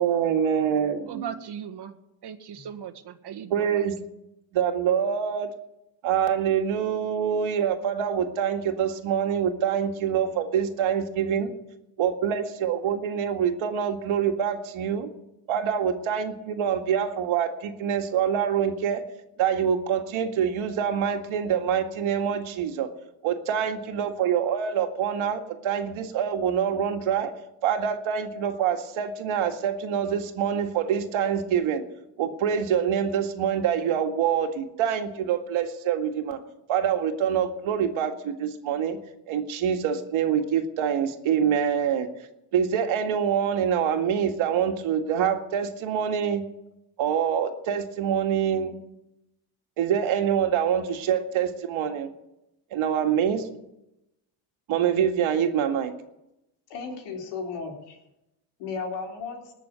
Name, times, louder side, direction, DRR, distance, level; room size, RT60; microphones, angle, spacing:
voice 1, 0.0-1.3 3.5-3.9 4.5-5.5 6.0-11.5 12.0-15.1 15.5-19.0 19.4-22.9 23.2-27.3 27.6-31.8 32.2-36.4 36.7-39.0 39.3-42.1 42.5-46.4 47.0-48.7 49.8-52.1 52.7-53.5 54.7-55.9, right 8 dB, 70° right, 5 dB, 2.1 m, -25 dB
voice 2, 1.1-1.9 2.2-3.9, right 8 dB, 50° right, 7 dB, 1.6 m, -38 dB
voice 3, 56.7-58.0 58.6-59.5, left 4 dB, 80° left, 1 dB, 4.1 m, -34 dB
20.0 x 6.9 x 8.2 m, 0.88 s
supercardioid pair, 85°, 50 cm